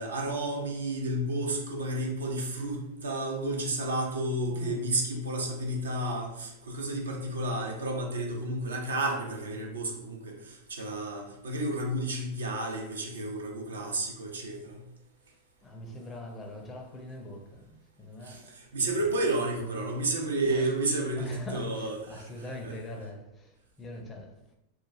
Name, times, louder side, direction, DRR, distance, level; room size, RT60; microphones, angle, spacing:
voice 1, 0.0-14.8 18.2-22.3 22.6-22.7, right 1 dB, 70° right, 0.5 m, -31 dB
voice 2, 4.5-5.0 15.6-18.5 18.9-19.2 20.5-20.7 21.1-24.3, left 1 dB, 20° left, 0.5 m, -43 dB
2.9 x 2.2 x 2.4 m
figure-of-eight pair, 90°, 0 cm